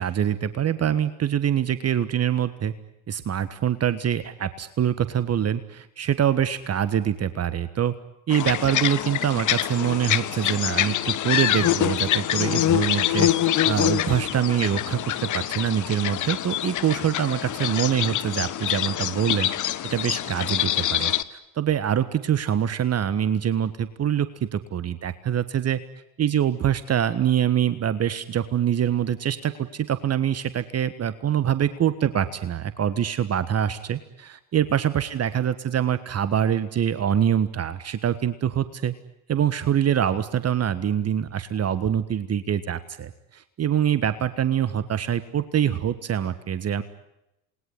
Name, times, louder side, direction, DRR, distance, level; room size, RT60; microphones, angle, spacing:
voice 1, 0.0-2.7 3.1-7.9 8.3-13.3 13.6-19.5 19.9-25.8 26.2-38.9 39.3-46.8, right 9 dB, 35° right, 14 dB, 1.4 m, -24 dB
sound 1, 8.3-21.2, left 12 dB, 40° left, 1.4 m, -25 dB
28.0 x 20.5 x 9.8 m, 0.89 s
hypercardioid pair, 75°, 45 cm